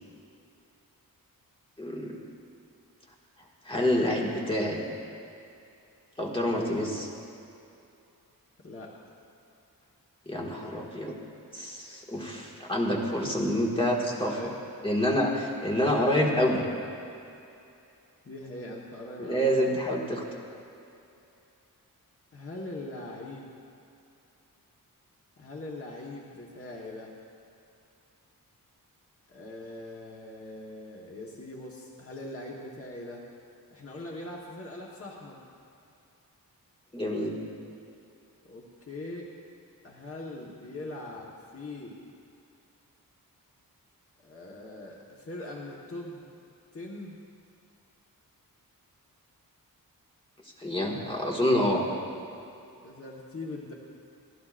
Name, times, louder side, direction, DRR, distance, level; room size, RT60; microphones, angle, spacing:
voice 1, 1.8-2.2 3.6-4.8 6.2-7.1 10.3-11.2 11.5-14.5 14.8-16.7 19.2-20.2 36.9-37.3 50.6-51.8, equal, 15° left, -2 dB, 1.9 m, -27 dB
voice 2, 8.6-8.9 14.0-14.6 18.2-19.8 22.3-23.5 25.4-27.1 29.3-33.2 33.7-35.4 38.4-39.3 39.8-42.0 44.2-46.3 46.7-47.2 51.8-51.9 52.8-53.7, left 2 dB, 40° left, -3 dB, 1.3 m, -41 dB
28.5 x 11.5 x 2.5 m, 2.6 s
wide cardioid pair, 140°, 36 cm